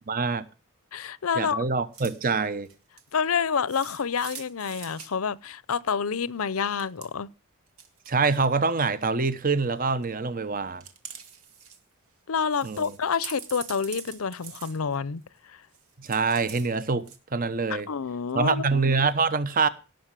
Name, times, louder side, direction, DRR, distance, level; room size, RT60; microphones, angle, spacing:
voice 1, 0.1-0.5 1.4-2.7 8.1-10.8 12.6-12.9 16.0-17.9 18.3-19.7, right 4 dB, 40° right, 1.0 m, -25 dB
voice 2, 0.9-1.7 3.1-7.3 12.3-15.6 17.9-18.6, left 6 dB, 75° left, 0.6 m, -28 dB
sound 1, 1.9-2.2 2.6-3.1 3.7-5.1 6.6-7.1 7.7-8.1 8.5-9.0 9.6-10.0 10.8-11.8 12.1-12.2 12.5-15.4 15.7-16.7 17.0-17.2, right 7 dB, 90° right, 2.2 m, -44 dB
17.5 x 6.7 x 7.4 m
head